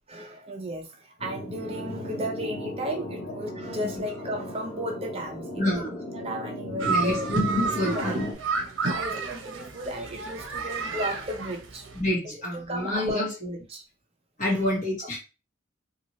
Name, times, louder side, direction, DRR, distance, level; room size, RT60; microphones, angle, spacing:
voice 1, 0.1-5.8 6.1-7.3 7.9-8.1 8.8-11.9 12.7-13.3 13.7-13.8 14.5-14.6, equal, 30° right, 2 dB, 0.5 m, -34 dB
sound 1, 1.2-8.3, left 1 dB, 85° left, 0.9 m, -36 dB
voice 2, 3.7-4.0 5.5-6.0 6.8-8.3 11.9-13.6 14.4-15.2, left 1 dB, 40° left, -3 dB, 1.4 m, -28 dB
sound 2, 6.8-12.0, right 4 dB, 80° right, 0.7 m, -31 dB
2.7 x 2.7 x 2.9 m, 0.31 s
head